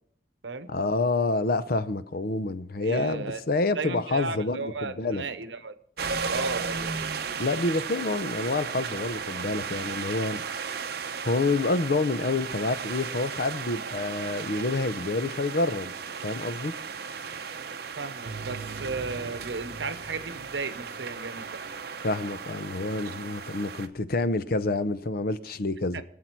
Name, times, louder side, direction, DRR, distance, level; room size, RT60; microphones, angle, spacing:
voice 1, 0.7-5.2 7.4-10.4 11.2-15.9 16.2-16.7 22.0-26.0, left 3 dB, 55° left, 0.7 m, -28 dB
voice 2, 2.8-3.4 3.7-5.8 6.3-7.1 18.0-21.6 25.9-26.0, right 4 dB, 85° right, 0.9 m, -35 dB
sound 1, 6.0-23.9, right 5 dB, 60° right, 0.8 m, -35 dB
22.0 x 7.7 x 4.5 m
head